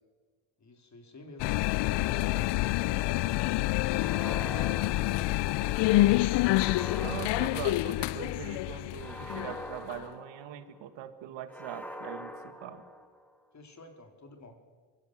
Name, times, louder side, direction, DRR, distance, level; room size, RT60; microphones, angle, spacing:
voice 1, 0.6-3.3 3.9-6.4 13.5-14.5, left 3 dB, 40° left, 5 dB, 4.0 m, -50 dB
sound 1, 1.4-10.0, left 18 dB, 70° left, 0.6 m, -27 dB
sound 2, 3.9-5.8 6.4-8.3 9.0-10.8 11.5-13.4, equal, 5° left, 2.7 m, -44 dB
voice 2, 7.0-12.8, right 10 dB, 75° right, 11 dB, 2.0 m, -41 dB
23.5 x 15.5 x 7.7 m, 1.5 s
supercardioid pair, 80°, 44 cm